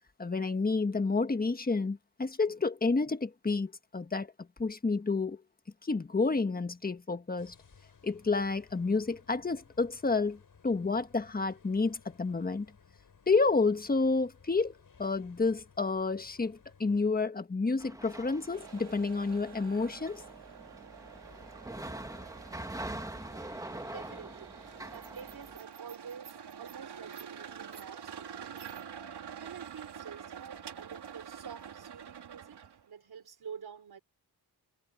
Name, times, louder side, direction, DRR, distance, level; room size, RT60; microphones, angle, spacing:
voice 1, 0.2-4.3 4.6-5.4 5.8-7.5 8.0-10.4 10.6-12.7 13.3-14.7 15.0-20.2, left 3 dB, 20° left, 1.4 m, -30 dB
sound 1, 7.4-17.1, left 5 dB, 55° left, 7.9 m, -60 dB
sound 2, 17.8-25.6, right 1 dB, 10° right, 1.6 m, -44 dB
sound 3, 18.5-32.9, right 8 dB, 90° right, 3.0 m, -47 dB
voice 2, 23.6-28.8 29.1-34.0, right 7 dB, 65° right, 4.3 m, -49 dB
wide cardioid pair, 125°, 40 cm